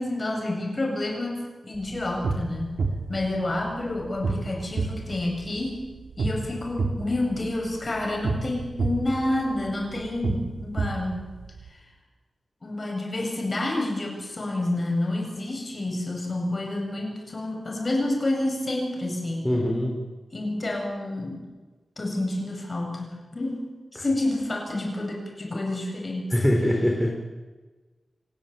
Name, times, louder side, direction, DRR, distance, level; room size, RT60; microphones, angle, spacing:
voice 1, 0.0-2.8 3.1-5.9 6.2-11.3 12.6-19.4 20.3-21.4 22.0-26.3, left 1 dB, 35° left, 1 dB, 8.0 m, -29 dB
sound 1, 1.7-11.7, right 3 dB, 80° right, 3.6 m, -31 dB
voice 2, 19.4-20.0 24.0-24.1 26.3-27.1, equal, 5° left, 0 dB, 3.7 m, -23 dB
29.0 x 16.0 x 9.1 m, 1.3 s
wide cardioid pair, 130°, 0 cm